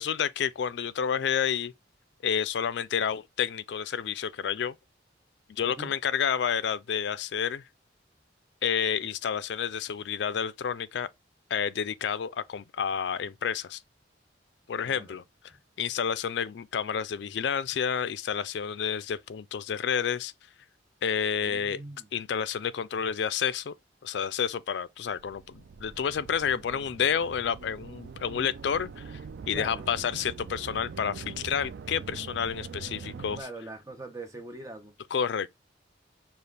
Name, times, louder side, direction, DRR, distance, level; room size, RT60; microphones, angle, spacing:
voice 1, 0.0-1.7 2.2-4.7 5.5-7.6 8.6-11.1 11.5-13.8 14.7-15.2 15.8-20.3 21.0-21.8 22.1-23.7 24.0-29.2 29.5-33.4 35.1-35.5, left 7 dB, 65° left, 0.4 m, -30 dB
voice 2, 5.6-5.9 14.8-15.2 21.4-22.1 29.5-29.9 33.4-34.9, right 2 dB, 20° right, 0.8 m, -42 dB
sound 1, 25.0-33.4, right 5 dB, 60° right, 0.3 m, -43 dB
5.5 x 2.4 x 3.3 m
head